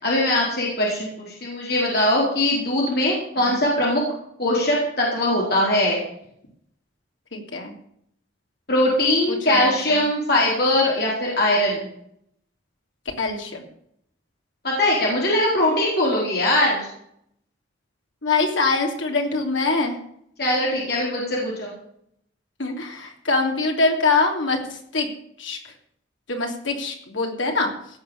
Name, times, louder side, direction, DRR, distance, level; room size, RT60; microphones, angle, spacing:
voice 1, 0.0-4.0 4.4-6.0 8.7-11.9 14.6-16.9 20.4-21.7, left 1 dB, 55° left, -4 dB, 4.4 m, -21 dB
voice 2, 7.3-7.7 9.3-10.0 13.2-13.7 18.2-20.0 22.6-25.1 25.4-25.6 26.3-27.7, left 3 dB, 80° left, 3 dB, 3.0 m, -24 dB
17.0 x 6.7 x 7.1 m, 0.70 s
head